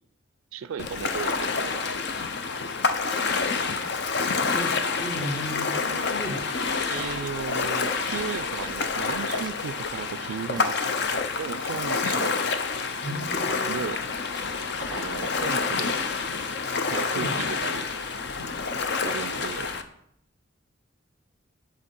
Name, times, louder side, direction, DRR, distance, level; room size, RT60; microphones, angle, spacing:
voice 1, 0.5-1.8 6.9-10.7 11.1-12.4 13.7-14.0 14.9-16.0 16.9-17.9 19.0-19.7, right 7 dB, 85° right, 14 dB, 0.3 m, -35 dB
Ocean, 0.8-19.8, left 4 dB, 55° left, 0.6 m, -28 dB
voice 2, 4.3-6.7 13.0-13.9 17.1-17.4, equal, 30° left, -4 dB, 1.4 m, -35 dB
sound 1, 7.0-7.4 8.2-8.5 9.3-9.7 10.6-10.9 11.7-11.8, right 4 dB, 20° right, 0.6 m, -43 dB
8.9 x 4.5 x 5.3 m, 0.72 s
head